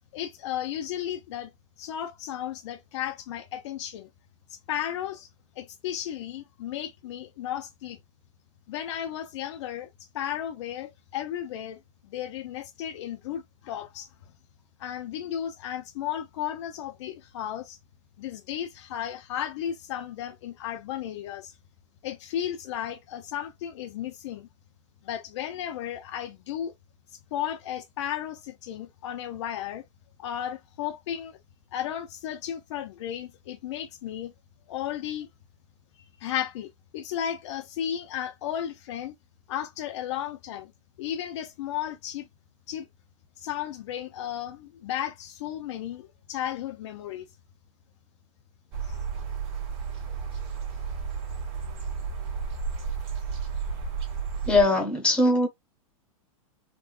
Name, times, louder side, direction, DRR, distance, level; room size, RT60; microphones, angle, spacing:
voice 1, 0.1-1.5 1.8-4.1 4.5-5.3 5.6-8.0 8.7-9.9 10.1-11.8 12.0-14.1 14.8-17.8 18.2-21.5 22.0-24.5 25.0-26.7 27.3-29.8 30.2-31.4 31.7-34.3 34.7-35.3 36.2-39.1 39.5-40.7 41.0-42.3 42.7-42.9 43.4-47.3, left 10 dB, 55° left, 0.6 m, -34 dB
sound 1, 48.7-54.6, right 6 dB, 30° right, 1.2 m, -32 dB
voice 2, 54.4-55.5, left 2 dB, 5° left, 0.9 m, -21 dB
3.7 x 2.3 x 2.3 m
supercardioid pair, 160°, 18 cm